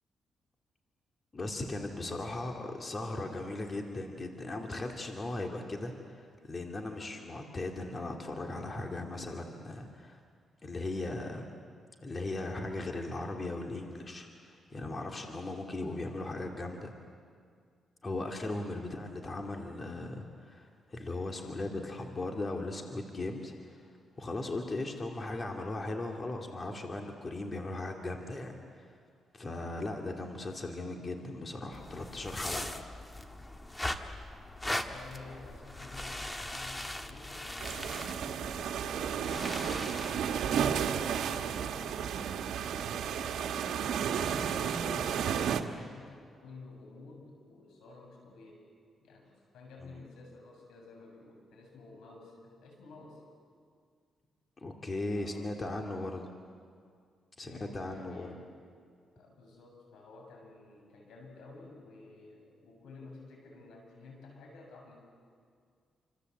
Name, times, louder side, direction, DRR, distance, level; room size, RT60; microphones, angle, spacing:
voice 1, 1.3-10.2 10.6-11.5 12.0-16.9 18.0-23.9 24.2-29.0 29.3-33.1 44.2-44.4 49.8-49.9 54.6-56.3 57.4-58.4, left 2 dB, 30° left, 2 dB, 2.6 m, -38 dB
sound 1, 31.7-41.1, left 1 dB, 15° left, 1.7 m, -40 dB
voice 2, 34.6-40.7 41.2-43.9 44.4-48.7 49.0-53.2 55.1-56.2 57.4-58.4 59.2-65.1, left 3 dB, 90° left, 2 dB, 7.1 m, -52 dB
sound 2, 37.6-45.6, right 8 dB, 85° right, 1.5 m, -32 dB
28.5 x 26.0 x 8.0 m, 2.1 s
cardioid pair, 90°, 0 cm